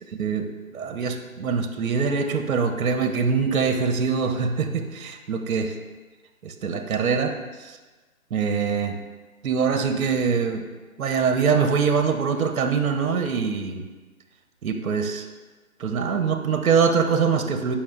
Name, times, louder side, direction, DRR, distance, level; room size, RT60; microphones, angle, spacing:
voice 1, 0.2-5.8 6.4-7.8 8.3-9.0 9.4-10.7 11.0-13.9 14.6-15.3 15.8-17.8, right 5 dB, 70° right, 7 dB, 0.7 m, -23 dB
8.0 x 5.7 x 2.4 m, 1.3 s
hypercardioid pair, 160°, 43 cm